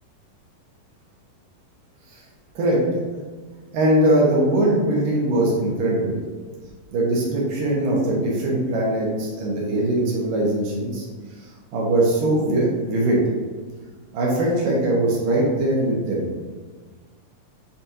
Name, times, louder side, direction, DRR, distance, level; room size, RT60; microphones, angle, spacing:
voice 1, 3.7-6.2 6.9-11.0 11.7-13.2 14.1-16.2, right 1 dB, 70° right, -3 dB, 2.9 m, -21 dB
9.0 x 4.2 x 2.9 m, 1.4 s
omnidirectional pair, 4.2 m